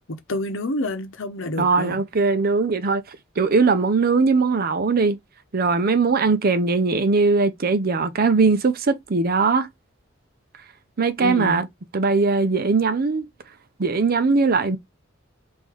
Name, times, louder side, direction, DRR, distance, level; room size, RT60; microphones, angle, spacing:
voice 1, 0.1-2.0 11.2-11.6, left 1 dB, 70° left, 0.9 m, -28 dB
voice 2, 1.6-3.0 3.4-5.2 5.5-9.7 11.0-11.7 11.9-13.3 13.8-14.8, right 4 dB, 50° right, 0.6 m, -20 dB
3.8 x 2.7 x 4.4 m
head